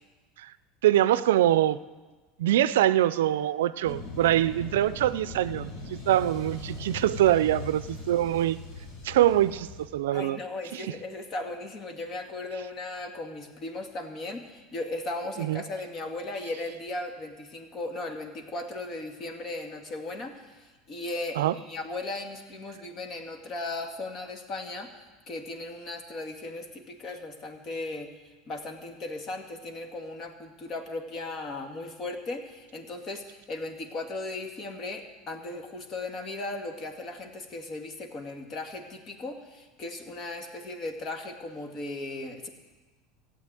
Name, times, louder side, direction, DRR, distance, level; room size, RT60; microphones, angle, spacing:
voice 1, 0.8-1.8 2.4-8.6 9.0-10.4 10.7-10.9 15.4-15.6 21.4-21.5, right 13 dB, 85° right, 16 dB, 0.5 m, -24 dB
sound 1, 3.8-9.9, left 2 dB, 65° left, 4.0 m, -40 dB
voice 2, 10.1-28.1 28.5-42.5, left 2 dB, 40° left, 4 dB, 2.2 m, -37 dB
14.5 x 8.4 x 9.0 m, 1.3 s
supercardioid pair, 105°, 0 cm